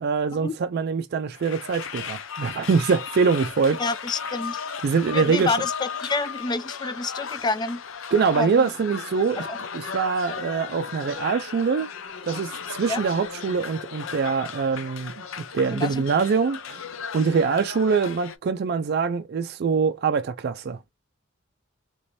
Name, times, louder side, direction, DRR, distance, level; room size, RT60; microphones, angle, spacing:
voice 1, 0.0-3.8 4.8-5.6 8.1-9.5 9.7-11.9 12.2-15.1 15.5-16.8 17.1-20.8, right 5 dB, 55° right, 0.4 m, -24 dB
sound 1, 1.3-18.4, left 6 dB, 80° left, 0.6 m, -36 dB
voice 2, 3.8-4.6 5.1-7.8 8.4-8.7 9.5-9.6 12.9-13.0 15.7-16.1, left 3 dB, 20° left, 0.4 m, -28 dB
3.2 x 3.0 x 2.6 m
head